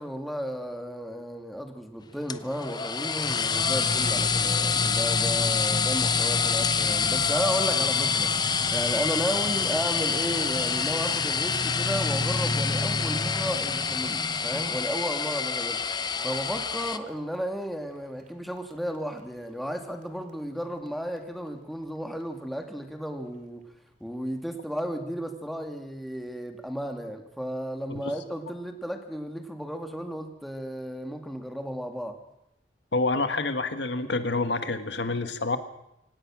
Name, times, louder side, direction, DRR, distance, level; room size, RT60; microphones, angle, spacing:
voice 1, 0.0-15.8 16.2-23.6 24.0-32.2, equal, ahead, 4 dB, 2.2 m, -33 dB
sound 1, 2.3-17.0, left 5 dB, 25° left, 0.8 m, -26 dB
sound 2, 4.7-15.0 15.9-18.0 18.3-19.2 19.7-19.8 20.0-20.1 20.3-20.4 20.9-21.0 21.2-21.3, equal, 45° right, 2.4 m, -43 dB
voice 2, 32.9-35.6, left 3 dB, 85° left, 9 dB, 1.7 m, -27 dB
25.5 x 18.0 x 6.2 m, 0.84 s
head